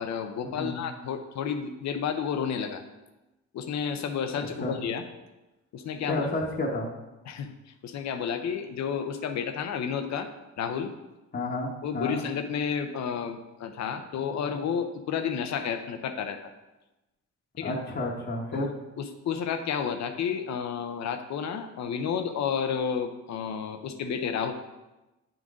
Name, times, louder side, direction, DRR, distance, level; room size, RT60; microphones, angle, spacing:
voice 1, 0.0-2.8 3.5-5.0 5.7-6.2 7.3-7.5 7.8-10.3 10.6-10.9 11.8-16.4 17.6-17.7 18.5-18.7 19.0-24.5, left 7 dB, 65° left, 8 dB, 0.7 m, -31 dB
voice 2, 6.1-6.9 11.3-12.2 17.6-18.7, left 2 dB, 30° left, -3 dB, 1.2 m, -31 dB
9.1 x 3.9 x 3.7 m, 1.0 s
cardioid pair, 90°, 30 cm